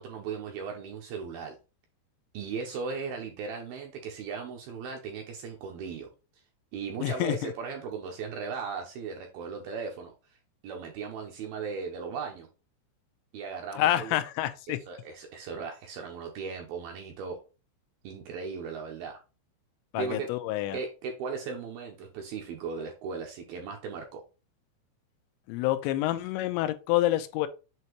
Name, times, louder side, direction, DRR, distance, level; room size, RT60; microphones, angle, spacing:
voice 1, 0.0-1.6 2.3-6.1 6.7-10.1 10.6-12.5 13.3-14.2 14.7-17.4 18.0-19.2 19.9-20.3 20.7-24.2, right 5 dB, 75° right, 2.3 m, -37 dB
voice 2, 7.0-7.5 13.8-14.8 19.9-20.8 25.5-27.5, left 14 dB, 85° left, 3.0 m, -28 dB
7.9 x 2.8 x 4.6 m
omnidirectional pair, 5.1 m